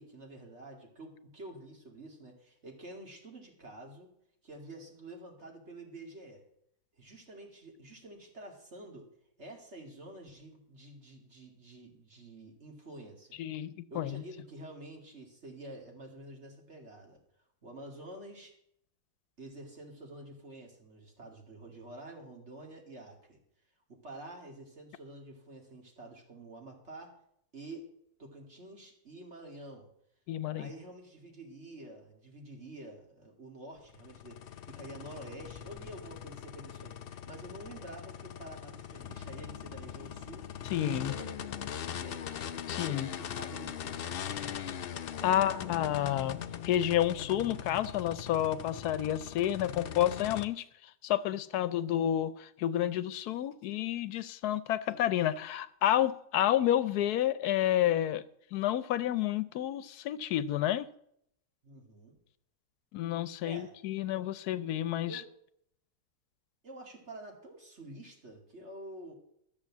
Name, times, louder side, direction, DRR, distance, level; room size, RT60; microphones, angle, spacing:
voice 1, 0.0-4.1 4.4-6.5 7.0-9.1 9.4-13.4 13.9-17.2 17.6-18.6 19.4-23.4 23.9-27.2 27.5-27.9 28.2-29.9 30.5-42.5 43.1-44.1 45.2-46.0 61.6-62.1 63.4-63.7 64.0-64.3 65.1-65.3 66.6-69.1, right 1 dB, 45° right, 2.6 m, -48 dB
voice 2, 13.4-14.2 30.3-30.7 40.7-41.1 42.7-43.1 44.8-44.9 45.2-58.2 58.5-60.9 62.9-65.2, left 12 dB, 80° left, 1.2 m, -30 dB
sound 1, 33.8-50.4, left 9 dB, 60° left, 0.6 m, -41 dB
13.0 x 6.9 x 7.2 m
omnidirectional pair, 1.6 m